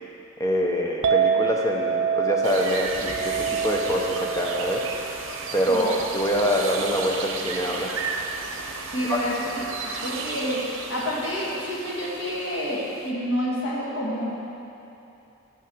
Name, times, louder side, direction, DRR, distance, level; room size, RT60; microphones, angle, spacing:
voice 1, 0.4-4.9 5.5-7.9 9.1-9.3, equal, 15° left, -1 dB, 0.6 m, -25 dB
Chink clink, 1.0-7.3, right 6 dB, 60° right, 0.3 m, -28 dB
sound 1, 2.4-13.1, right 4 dB, 85° right, 0.7 m, -34 dB
voice 2, 8.9-9.6 10.0-14.3, equal, 70° left, -5 dB, 1.6 m, -28 dB
6.1 x 5.9 x 6.1 m, 2.8 s
head